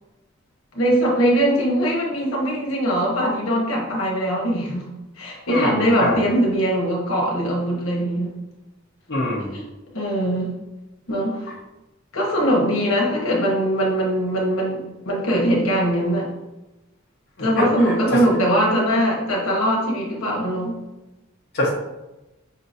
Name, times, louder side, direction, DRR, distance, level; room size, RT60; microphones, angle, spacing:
voice 1, 0.7-4.9 5.2-8.3 9.5-9.6 9.9-10.5 11.1-11.5 12.1-16.3 17.4-20.8, equal, 85° left, -2 dB, 1.1 m, -21 dB
voice 2, 5.5-6.2 9.1-9.5 17.6-17.9 21.5-21.7, left 1 dB, 55° left, -4 dB, 0.9 m, -24 dB
5.5 x 2.8 x 2.6 m, 1.0 s
head